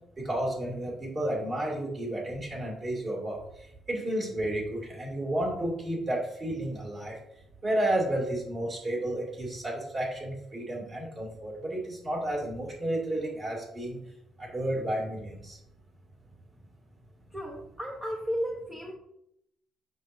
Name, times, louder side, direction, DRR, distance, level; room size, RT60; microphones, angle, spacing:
voice 1, 0.2-3.4 3.9-7.2 7.6-14.0 14.4-15.6, right 1 dB, 30° right, -2 dB, 2.8 m, -31 dB
voice 2, 17.3-18.9, equal, 10° right, -1 dB, 0.9 m, -34 dB
7.7 x 6.2 x 2.7 m, 0.78 s
cardioid pair, 135°, 0 cm